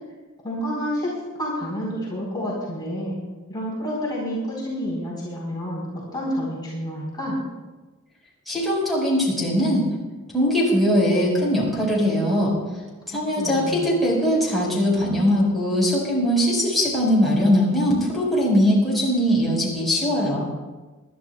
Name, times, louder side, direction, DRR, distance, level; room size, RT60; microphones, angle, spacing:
voice 1, 0.4-3.1 3.5-5.8 6.1-7.4 13.4-13.9, equal, 20° left, -5 dB, 4.2 m, -29 dB
voice 2, 8.5-9.8 10.3-12.5 13.1-20.5, equal, ahead, -6 dB, 5.0 m, -21 dB
26.5 x 12.5 x 2.4 m, 1.2 s
head